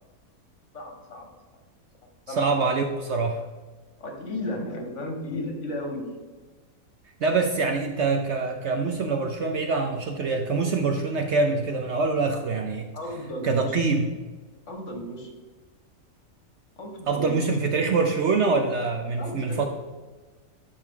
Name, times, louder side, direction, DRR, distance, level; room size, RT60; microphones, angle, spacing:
voice 1, 0.7-1.3 2.3-2.5 4.0-6.1 12.9-13.7 14.7-15.3 16.8-17.4 19.2-19.7, left 1 dB, 55° left, 2 dB, 1.7 m, -34 dB
voice 2, 2.3-3.4 7.2-12.9 13.4-14.1 17.1-19.7, right 4 dB, 60° right, 4 dB, 0.8 m, -25 dB
12.0 x 4.7 x 3.7 m, 1.3 s
omnidirectional pair, 1.6 m